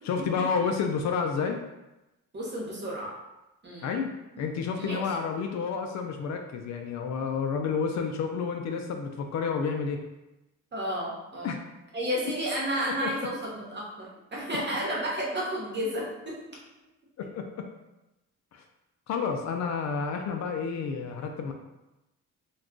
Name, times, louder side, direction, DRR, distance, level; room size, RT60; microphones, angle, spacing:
voice 1, 0.0-1.6 3.8-4.1 4.4-10.0 11.4-11.6 13.0-13.1 17.2-17.7 18.5-18.6 19.1-21.5, left 5 dB, 65° left, 4 dB, 0.5 m, -30 dB
voice 2, 2.3-3.1 3.6-3.9 4.8-5.0 10.7-11.6 11.9-16.4, equal, 35° right, -4 dB, 1.0 m, -32 dB
2.4 x 2.3 x 3.6 m, 0.97 s
cardioid pair, 90°, 30 cm